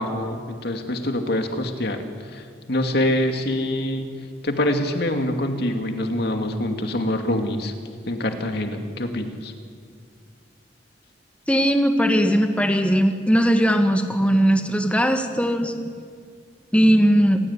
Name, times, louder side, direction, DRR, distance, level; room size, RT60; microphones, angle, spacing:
voice 1, 0.0-4.1 4.4-7.7 8.1-9.5, left 1 dB, 65° left, 5 dB, 2.5 m, -25 dB
voice 2, 11.5-15.7 16.7-17.4, equal, 5° left, 5 dB, 1.4 m, -19 dB
27.5 x 16.0 x 9.9 m, 2.1 s
head